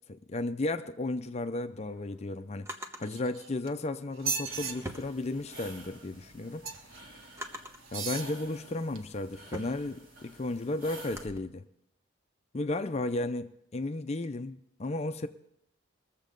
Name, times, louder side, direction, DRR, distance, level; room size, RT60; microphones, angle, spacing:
voice 1, 0.1-6.7 7.9-11.7 12.5-15.3, left 2 dB, 35° left, 0.5 m, -34 dB
Drawer open or close, 1.5-3.1 4.1-5.8 6.2-7.9 8.6-11.4, right 1 dB, 15° right, 1.0 m, -45 dB
sound 1, 3.0-3.7 4.1-4.7 6.6-7.0 7.8-8.3 9.0-9.1, right 5 dB, 85° right, 1.0 m, -35 dB
sound 2, 4.4-11.3, right 1 dB, 45° right, 2.7 m, -50 dB
21.0 x 7.4 x 5.2 m
head